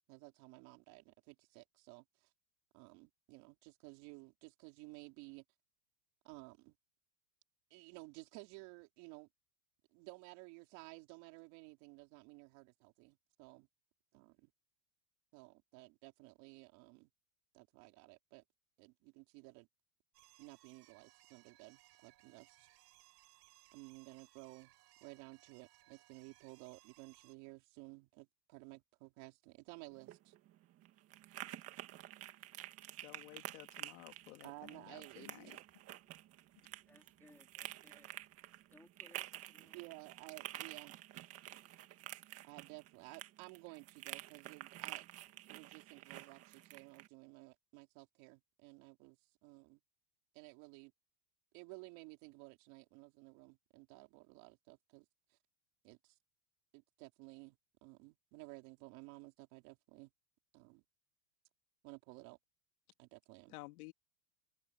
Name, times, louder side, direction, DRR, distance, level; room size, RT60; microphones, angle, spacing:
voice 1, 0.1-2.3 2.7-5.4 6.2-6.8 7.7-9.3 9.9-13.7 14.1-14.5 15.3-17.1 17.5-18.4 18.8-19.7 20.4-22.7 23.7-24.7 25.0-30.3 34.4-35.6 39.6-41.0 42.4-45.1 45.5-49.8 50.3-50.9 51.5-55.1 55.3-55.4 55.8-56.2 56.7-60.1 60.5-60.8 61.8-62.4 63.0-63.6, right 26 dB, 45° right, 3.9 m, -55 dB
sound 1, 20.1-27.4, right 18 dB, 75° right, 4.5 m, -66 dB
sound 2, 29.9-47.1, right 14 dB, 30° right, 1.8 m, -50 dB
voice 2, 33.0-35.6 63.5-63.9, left 21 dB, 60° left, 2.1 m, -54 dB
voice 3, 35.8-40.0 40.3-41.0 41.6-41.7, left 2 dB, 5° left, 2.5 m, -68 dB
supercardioid pair, 165°, 49 cm